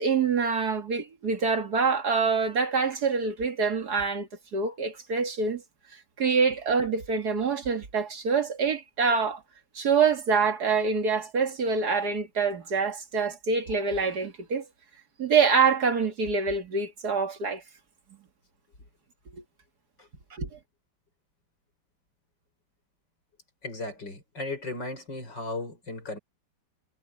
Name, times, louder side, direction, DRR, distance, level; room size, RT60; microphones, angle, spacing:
voice 1, 0.0-5.6 6.2-9.4 9.8-14.6 15.2-17.6 20.3-20.5, right 5 dB, 60° right, 2.5 m, -25 dB
voice 2, 23.6-26.2, left 2 dB, 85° left, 7.8 m, -36 dB
omnidirectional pair, 1.9 m